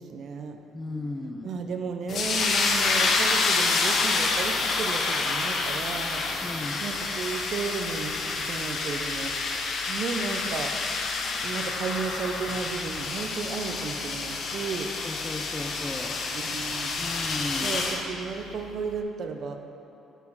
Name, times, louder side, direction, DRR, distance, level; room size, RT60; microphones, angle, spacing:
voice 1, 0.0-0.6 1.4-6.2 6.8-9.3 9.9-10.7 11.1-14.9 16.3-16.9 17.6-19.6, right 5 dB, 50° right, 6 dB, 0.6 m, -34 dB
voice 2, 0.7-1.6 6.4-6.8 15.0-16.2 17.0-17.7, left 2 dB, 15° left, 5 dB, 0.5 m, -35 dB
sound 1, 2.1-18.0, left 4 dB, 45° left, 0.9 m, -28 dB
8.0 x 6.6 x 5.9 m, 2.9 s
cardioid pair, 155°, 0 cm